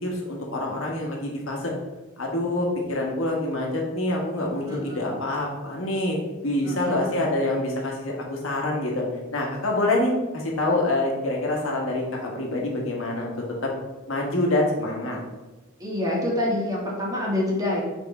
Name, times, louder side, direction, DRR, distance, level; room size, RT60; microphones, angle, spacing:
voice 1, 0.0-1.7 2.2-6.2 6.4-9.0 9.3-13.3 13.6-13.7 14.1-15.2, left 1 dB, 75° left, -1 dB, 1.4 m, -26 dB
voice 2, 4.7-5.1 6.6-7.2 15.8-17.8, left 1 dB, 20° right, -4 dB, 1.6 m, -27 dB
6.7 x 3.4 x 4.2 m, 1.1 s
head